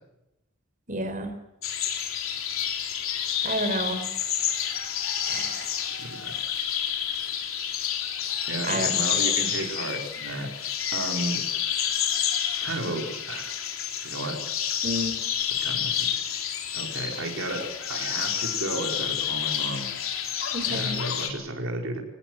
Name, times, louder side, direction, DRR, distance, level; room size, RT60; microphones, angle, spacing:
voice 1, 0.9-1.3 3.4-4.0 5.3-5.6 8.7-8.9 14.8-15.2 20.5-20.9, right 1 dB, 40° right, 8 dB, 4.4 m, -30 dB
sound 1, 1.6-21.3, left 9 dB, 80° left, 3.6 m, -29 dB
voice 2, 6.0-6.3 8.5-11.4 12.6-13.6 14.0-14.4 15.6-16.1 16.7-17.6 17.9-19.9 20.7-22.0, right 1 dB, 70° right, 1 dB, 5.1 m, -33 dB
23.5 x 19.5 x 8.1 m, 0.89 s
head